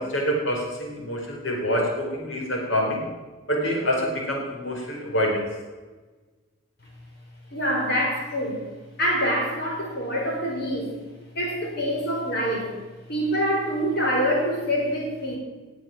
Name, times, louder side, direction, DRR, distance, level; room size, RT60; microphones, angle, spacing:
voice 1, 0.0-3.0 3.5-5.4, equal, 70° left, -1 dB, 4.8 m, -26 dB
voice 2, 7.5-8.6 9.0-10.9 11.3-12.7 13.1-15.4, equal, 50° left, -1 dB, 4.9 m, -25 dB
20.0 x 7.6 x 7.5 m, 1.3 s
head